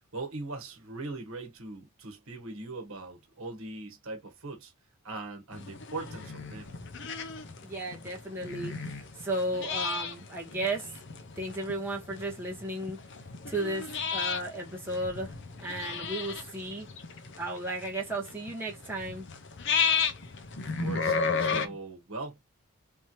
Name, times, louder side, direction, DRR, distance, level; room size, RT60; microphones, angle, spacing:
voice 1, 0.1-4.7 5.0-6.8 20.8-22.4, right 3 dB, 65° right, 1.3 m, -40 dB
sound 1, 5.5-21.7, left 5 dB, 55° left, 0.7 m, -34 dB
voice 2, 7.6-10.9 11.4-13.0 13.5-15.3 15.6-16.9 17.4-19.3 21.6-21.8, right 1 dB, 10° right, 1.4 m, -34 dB
4.3 x 3.4 x 3.0 m
head